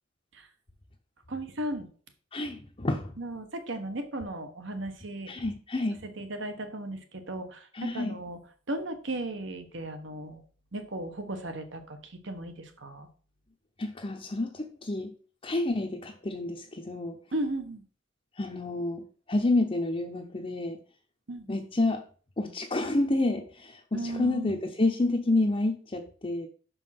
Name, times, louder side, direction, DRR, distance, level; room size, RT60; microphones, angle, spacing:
voice 1, 1.3-1.9 3.2-5.3 6.2-8.4 8.7-10.4 10.7-13.1 17.3-17.8 21.3-21.5 23.9-24.6, right 1 dB, 60° right, 7 dB, 1.3 m, -36 dB
voice 2, 2.3-3.1 5.3-6.0 7.7-8.2 13.8-15.1 15.4-17.2 18.4-20.8 21.5-22.0 22.4-26.5, left 2 dB, 25° left, 1 dB, 0.7 m, -29 dB
6.0 x 5.4 x 5.9 m, 0.42 s
head